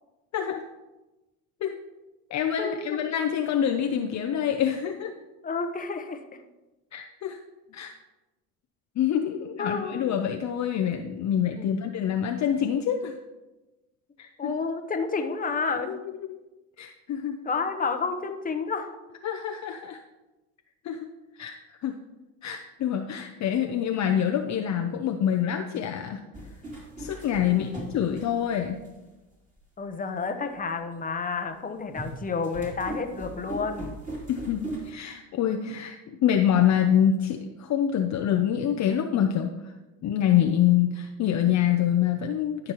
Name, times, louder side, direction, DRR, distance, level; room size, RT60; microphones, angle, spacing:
voice 1, 0.3-0.7 1.6-1.7 2.3-5.1 6.9-7.4 7.7-7.9 9.0-13.2 14.2-14.5 15.9-16.4 16.8-17.4 19.2-20.0 20.8-21.1 21.4-22.0 22.4-26.2 27.0-28.8 34.3-39.7 40.0-42.7, left 9 dB, 40° left, 5 dB, 0.6 m, -26 dB
voice 2, 2.6-3.0 5.4-6.4 9.6-10.2 11.5-11.9 14.4-15.9 17.4-19.0 27.5-27.9 29.8-34.0, left 4 dB, 20° left, 6 dB, 0.9 m, -30 dB
sound 1, 26.3-28.9 29.6-29.7 31.9-34.9, right 2 dB, 15° right, 2.8 m, -38 dB
13.5 x 5.3 x 3.0 m, 1.1 s
hypercardioid pair, 75°, 44 cm